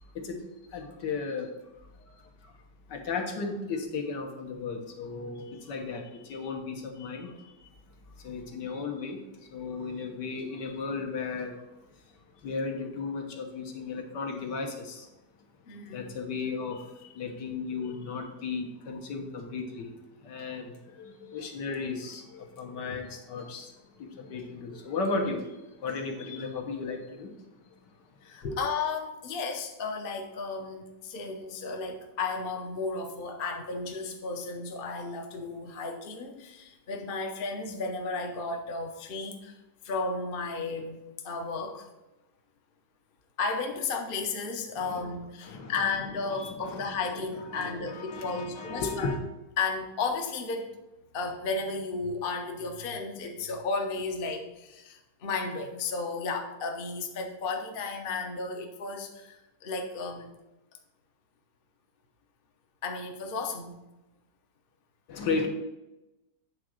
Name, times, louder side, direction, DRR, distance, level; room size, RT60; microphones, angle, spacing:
voice 1, 0.0-2.6 2.9-7.7 8.2-15.1 15.9-28.0 28.4-28.6 44.8-45.0 45.4-45.9 46.3-46.8 47.1-49.2 65.1-65.5, left 4 dB, 70° left, 1.7 m, -36 dB
voice 2, 15.7-16.0 28.2-39.6 39.8-41.9 43.4-49.1 49.6-50.7 51.1-60.3 62.8-63.8, left 4 dB, 40° left, 0.8 m, -34 dB
8.8 x 3.7 x 6.3 m
omnidirectional pair, 2.0 m